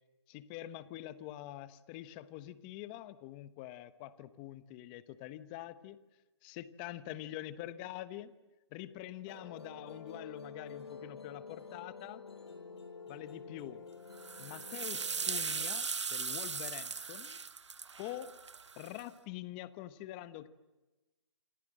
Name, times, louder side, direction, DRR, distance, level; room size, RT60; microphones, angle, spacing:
voice 1, 0.3-6.0 6.4-8.3 8.7-12.2 13.1-13.8 14.4-17.4 18.0-18.4 18.8-20.5, left 13 dB, 20° left, 14 dB, 1.0 m, -45 dB
Musical instrument, 9.3-15.7, left 4 dB, 65° left, 7.4 m, -49 dB
sound 1, 14.2-19.0, right 5 dB, 85° right, 0.8 m, -38 dB
28.0 x 26.5 x 7.6 m, 1.1 s
hypercardioid pair, 160°, 15 cm